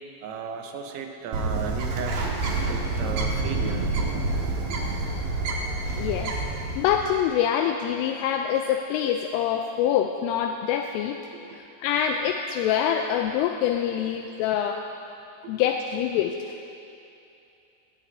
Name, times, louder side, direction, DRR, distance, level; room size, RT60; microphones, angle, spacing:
voice 1, 0.2-2.2 2.6-3.9 4.7-5.0 11.3-11.6 15.4-15.5, right 5 dB, 80° right, 3 dB, 3.6 m, -35 dB
Bird, 1.3-7.3, right 2 dB, 65° right, 2.3 m, -28 dB
voice 2, 5.9-6.4 6.8-11.2 11.5-14.8 15.5-16.5, left 9 dB, 85° left, 4 dB, 3.0 m, -25 dB
22.0 x 17.0 x 2.7 m, 2.7 s
omnidirectional pair, 5.9 m